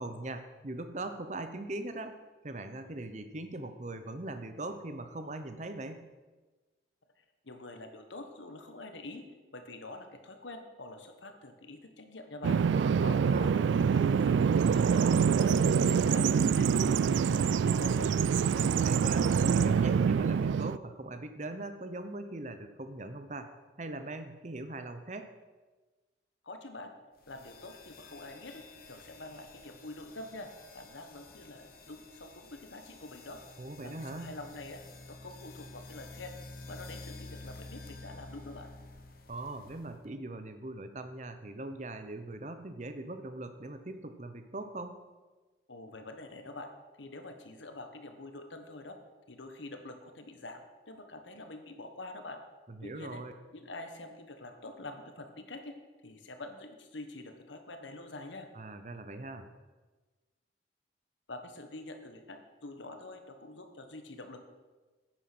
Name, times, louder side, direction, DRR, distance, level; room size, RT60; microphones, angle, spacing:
voice 1, 0.0-2.2 2.4-6.0 12.7-13.6 18.5-23.5 23.8-25.3 33.6-34.3 39.3-45.0 52.7-53.3 58.5-59.5, right 2 dB, 40° right, 8 dB, 0.9 m, -41 dB
voice 2, 7.4-9.2 9.5-12.6 13.0-16.3 16.5-18.1 26.4-26.9 27.3-28.6 28.9-33.4 33.8-34.8 35.1-36.4 36.6-38.7 45.7-46.7 47.0-49.0 49.3-52.4 52.8-53.2 53.5-55.7 56.0-58.5 61.3-64.4, left 2 dB, 85° left, 6 dB, 1.4 m, -46 dB
Bird vocalization bird call bird song, 12.4-20.8, right 6 dB, 80° right, 0.3 m, -25 dB
sound 1, 27.2-40.1, left 2 dB, 50° left, 1.1 m, -50 dB
10.0 x 9.0 x 6.1 m, 1.3 s
head